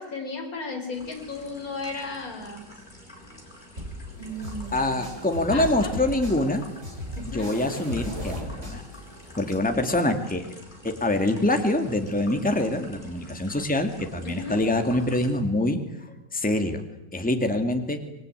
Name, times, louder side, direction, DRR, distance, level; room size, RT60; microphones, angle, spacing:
voice 1, 0.0-2.6 4.2-5.0 5.5-5.9 7.2-7.5 14.2-14.6, left 3 dB, 55° left, 2 dB, 4.8 m, -35 dB
sound 1, 0.9-15.4, left 1 dB, 25° left, 5.0 m, -48 dB
sound 2, 3.8-9.7, equal, 40° right, 8.4 m, -37 dB
voice 2, 4.7-6.6 7.3-8.8 9.4-10.5 10.8-16.8 17.1-18.0, left 1 dB, 5° left, 6 dB, 2.2 m, -25 dB
26.5 x 21.5 x 9.3 m, 0.97 s
omnidirectional pair, 1.9 m